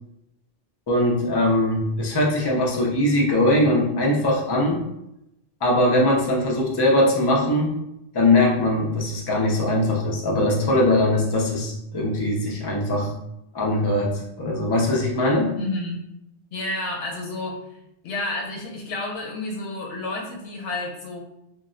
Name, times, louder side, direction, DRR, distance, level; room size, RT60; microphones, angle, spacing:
voice 1, 0.9-4.8 5.6-7.8 8.1-13.1 13.5-15.5, left 1 dB, 35° left, -2 dB, 0.4 m, -21 dB
voice 2, 15.6-16.0 16.5-17.6 18.0-21.2, left 2 dB, 80° left, -1 dB, 0.9 m, -30 dB
2.2 x 2.0 x 3.6 m, 0.84 s
omnidirectional pair, 1.2 m